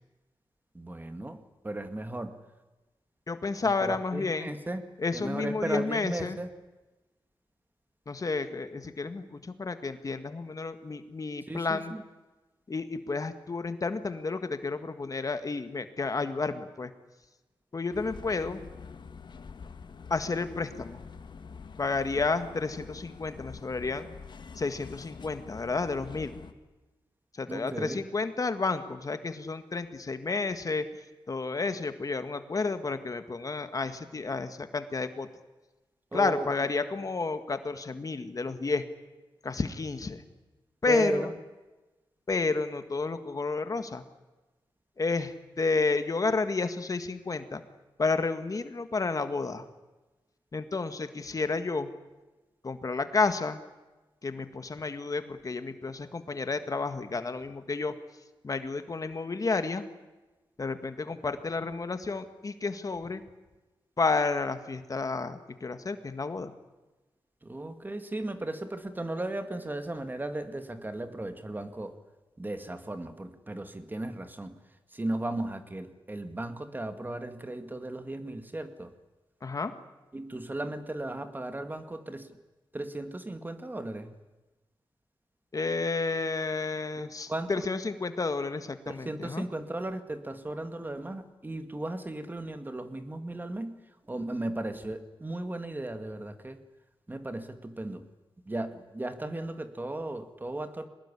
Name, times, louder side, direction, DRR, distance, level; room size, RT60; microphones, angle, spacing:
voice 1, 0.7-2.4 3.6-4.8 5.1-6.5 11.5-12.0 27.5-28.0 36.1-36.5 40.9-41.3 67.4-71.9 72.4-74.6 74.9-78.9 80.1-82.4 82.7-84.2 87.3-87.7 88.9-93.8 94.1-96.6 97.1-98.1 98.5-100.9, right 1 dB, 20° right, 9 dB, 2.1 m, -36 dB
voice 2, 3.3-4.5 5.0-6.4 8.1-11.9 12.7-16.9 17.7-18.6 20.1-21.0 21.8-24.1 24.6-26.3 27.4-30.9 31.3-35.3 36.1-38.8 39.4-40.2 40.8-41.3 42.3-44.0 45.0-47.6 48.0-49.7 50.5-51.9 52.6-53.6 54.2-57.9 58.4-59.8 60.6-63.2 64.0-66.5 79.4-79.7 85.5-89.5, left 3 dB, 40° left, 9 dB, 1.8 m, -31 dB
sound 1, 17.9-26.5, left 5 dB, 60° left, 1.6 m, -46 dB
23.0 x 20.0 x 10.0 m, 1.1 s
wide cardioid pair, 90°, 9 cm